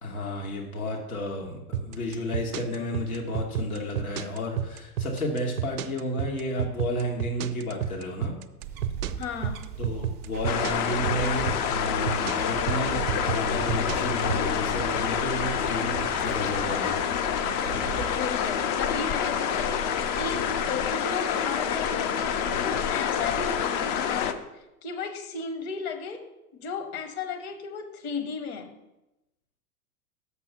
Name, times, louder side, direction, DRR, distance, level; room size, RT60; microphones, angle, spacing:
voice 1, 0.0-8.4 9.8-17.1, left 1 dB, 75° left, -1 dB, 1.5 m, -32 dB
sound 1, 1.7-14.5, right 9 dB, 65° right, 0.6 m, -30 dB
sound 2, 8.6-18.4, right 9 dB, 25° right, 0.5 m, -39 dB
voice 2, 9.2-9.7 17.9-26.2 26.5-28.7, left 5 dB, 45° left, 7 dB, 1.2 m, -35 dB
sound 3, 10.4-24.3, left 8 dB, 30° left, 0.4 m, -27 dB
6.7 x 5.8 x 5.6 m, 0.94 s
figure-of-eight pair, 95°, 44 cm